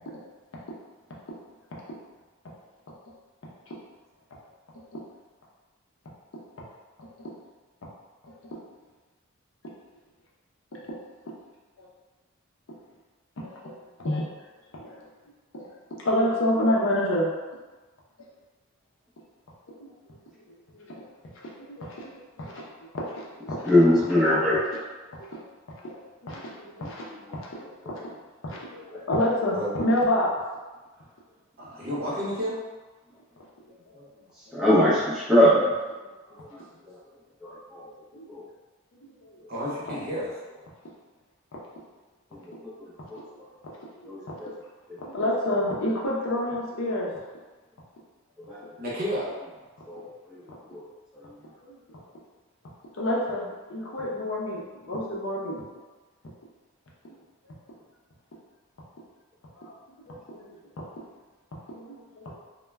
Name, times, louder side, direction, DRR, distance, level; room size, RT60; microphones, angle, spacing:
voice 1, 13.4-13.7 14.0-14.3 14.8-15.1 15.5-15.7 16.0-17.3 18.2-18.3 19.7-19.9 20.5-21.0 21.4-22.1 22.4-22.6 22.9-23.7 25.2-25.4 25.7-28.2 28.4-30.3 38.1-38.3 39.0-39.4 42.5-42.9 43.6-43.7 44.0-44.3 45.0-47.1 51.6-52.0 53.0-55.6 57.0-57.2 59.6-59.7 60.0-60.5 61.7-62.3, left 1 dB, 65° left, -4 dB, 0.6 m, -29 dB
voice 2, 23.6-24.6 28.9-29.0 34.5-35.6 36.5-36.9 37.4-37.9 38.3-38.4 42.8-43.2 44.1-44.5 48.5-48.6 49.9-50.4 50.7-50.9 51.1-51.2, left 1 dB, 5° right, -9 dB, 0.6 m, -22 dB
voice 3, 31.6-32.6 33.9-34.1 39.5-40.3 48.8-49.3, equal, 45° right, -7 dB, 0.7 m, -31 dB
2.1 x 2.1 x 3.3 m, 1.2 s
head